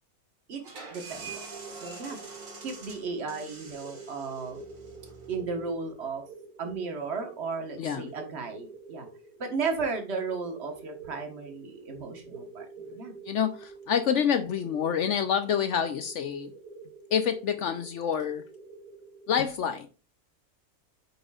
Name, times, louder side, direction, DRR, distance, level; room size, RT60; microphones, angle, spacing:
sound 1, 0.6-6.1, right 4 dB, 65° right, 2.0 m, -45 dB
voice 1, 0.9-1.3 1.6-2.2 2.6-4.6 5.3-6.2 6.6-9.1 9.4-13.1, right 4 dB, 50° right, 1.5 m, -34 dB
sound 2, 1.1-19.4, right 4 dB, 90° right, 1.7 m, -48 dB
voice 2, 13.3-16.5 17.1-18.4 19.3-19.9, left 8 dB, 65° left, 0.8 m, -27 dB
8.7 x 5.2 x 2.4 m
omnidirectional pair, 1.5 m